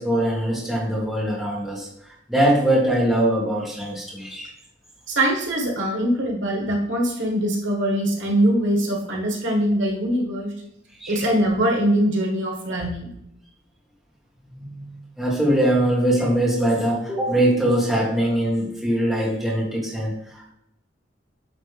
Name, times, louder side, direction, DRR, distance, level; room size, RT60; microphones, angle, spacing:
voice 1, 0.0-1.9 2.3-4.5 11.0-11.2 14.6-14.9 15.2-20.5, right 1 dB, ahead, -5 dB, 1.5 m, -22 dB
voice 2, 5.1-10.5 11.1-13.1, right 1 dB, 85° right, 0 dB, 1.4 m, -22 dB
9.1 x 3.2 x 3.3 m, 0.77 s
head